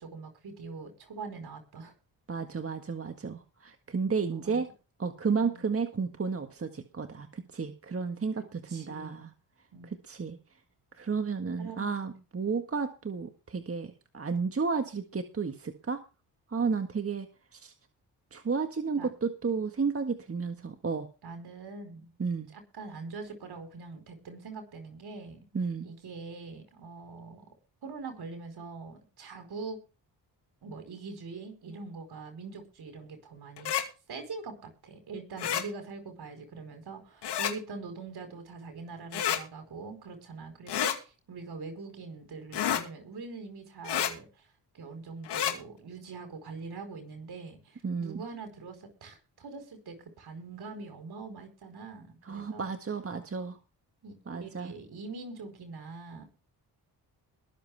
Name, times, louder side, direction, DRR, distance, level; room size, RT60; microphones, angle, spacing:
voice 1, 0.0-1.9 4.3-4.6 5.3-5.6 8.7-9.2 9.7-9.9 11.6-11.9 19.0-19.1 21.2-22.1 22.5-25.4 25.8-27.5 27.8-29.8 30.6-33.7 34.1-44.5 44.7-52.7 54.0-56.3, right 4 dB, 65° right, 6 dB, 4.9 m, -43 dB
voice 2, 2.3-4.7 5.0-8.4 8.7-9.3 9.8-10.4 11.0-16.0 16.5-17.3 17.5-17.7 18.3-21.1 22.2-22.5 25.5-25.9 47.8-48.2 52.3-53.6 54.3-54.7, right 5 dB, 35° right, 6 dB, 1.7 m, -32 dB
sound 1, 33.6-33.8 35.4-35.6 37.2-37.5 39.1-39.4 40.7-41.0 42.5-42.8 43.8-44.1 45.2-45.5, left 10 dB, 80° left, 2.3 m, -29 dB
22.0 x 7.5 x 3.6 m, 0.32 s
cardioid pair, 65°, 41 cm